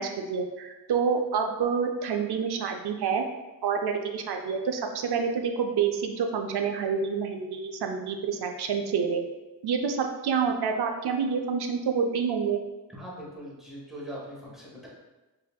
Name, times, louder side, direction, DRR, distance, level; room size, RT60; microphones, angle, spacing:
voice 1, 0.0-3.2 3.6-9.2 9.6-12.6, right 6 dB, 65° right, 4 dB, 0.5 m, -28 dB
voice 2, 12.9-14.9, equal, ahead, -5 dB, 1.2 m, -41 dB
5.2 x 2.7 x 2.2 m, 1.1 s
cardioid pair, 85°, 43 cm